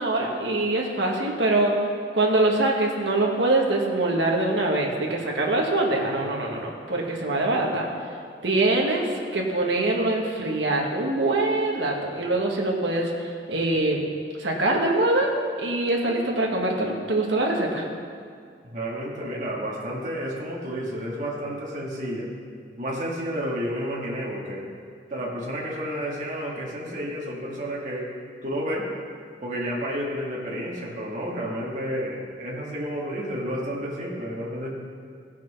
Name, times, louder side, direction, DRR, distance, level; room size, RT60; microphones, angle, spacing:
voice 1, 0.0-1.7 2.1-7.9 8.4-13.1 13.5-14.1 14.4-15.3 15.6-17.9, right 2 dB, 90° right, -1 dB, 1.7 m, -24 dB
voice 2, 18.6-22.3 22.8-24.7 25.1-28.1 28.4-28.9 29.4-34.7, equal, 45° right, -4 dB, 2.0 m, -31 dB
16.0 x 6.1 x 5.7 m, 2.3 s
head